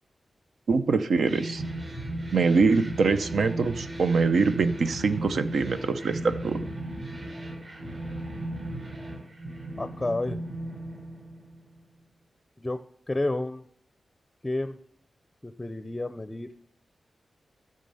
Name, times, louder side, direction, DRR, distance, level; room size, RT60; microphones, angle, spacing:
voice 1, 0.7-1.6 2.3-6.7, right 4 dB, 80° right, 10 dB, 0.8 m, -24 dB
sound 1, 1.2-11.8, right 1 dB, 55° right, 6.1 m, -36 dB
voice 2, 9.8-10.4 12.6-13.6 14.4-14.8 15.4-16.5, left 2 dB, 15° left, 10 dB, 0.5 m, -30 dB
14.0 x 6.7 x 5.5 m, 0.62 s
wide cardioid pair, 120°, 0 cm